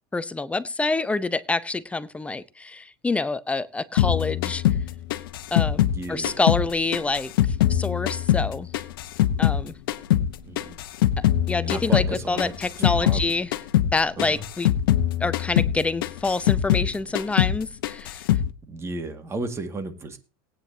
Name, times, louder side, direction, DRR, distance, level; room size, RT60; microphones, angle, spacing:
voice 1, 0.1-4.6 5.5-8.7 9.4-9.7 11.2-13.5 13.9-14.7 15.2-18.3, left 3 dB, 10° left, 0.7 m, -27 dB
sound 1, 4.0-6.7 6.9-9.6 9.9-13.3 13.5-13.9 14.2-16.9 17.1-17.6 17.8-18.5, left 12 dB, 85° left, 0.9 m, -22 dB
voice 2, 5.8-6.4 10.4-10.8 11.6-12.5 13.0-13.3 14.2-14.4 18.6-20.2, right 2 dB, 25° right, 1.9 m, -33 dB
19.0 x 9.2 x 2.8 m
supercardioid pair, 115°, 11 cm